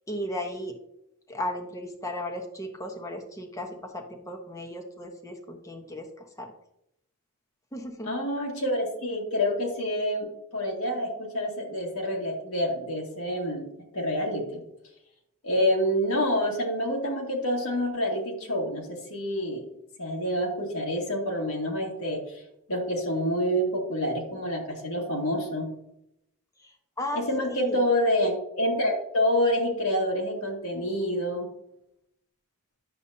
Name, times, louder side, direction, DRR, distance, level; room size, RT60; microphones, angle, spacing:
voice 1, 0.1-0.8 1.3-6.5 7.7-8.1 26.6-27.2 27.5-27.9, left 1 dB, 15° left, 4 dB, 1.0 m, -35 dB
voice 2, 8.1-10.3 10.5-13.7 13.9-14.6 15.4-19.6 20.0-22.2 22.7-25.7 27.1-31.5, equal, 75° left, -1 dB, 2.0 m, -27 dB
9.9 x 7.1 x 2.7 m, 0.80 s
head